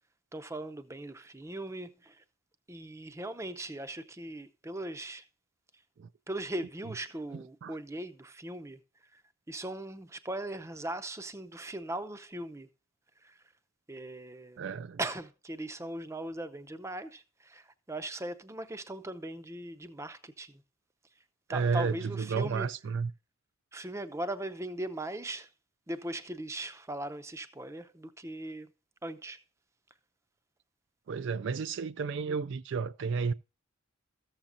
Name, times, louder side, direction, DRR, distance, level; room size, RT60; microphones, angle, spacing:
voice 1, 0.3-2.2 2.7-5.3 6.3-8.8 9.1-9.2 9.5-12.7 13.2-13.4 13.9-14.6 15.0-20.6 21.5-22.7 23.7-25.5 25.9-28.7 29.0-29.4, right 1 dB, 15° right, 0.6 m, -39 dB
voice 2, 7.3-7.8 14.6-15.0 21.5-23.1 31.1-33.3, right 5 dB, 60° right, 0.3 m, -32 dB
14.5 x 7.3 x 2.6 m
head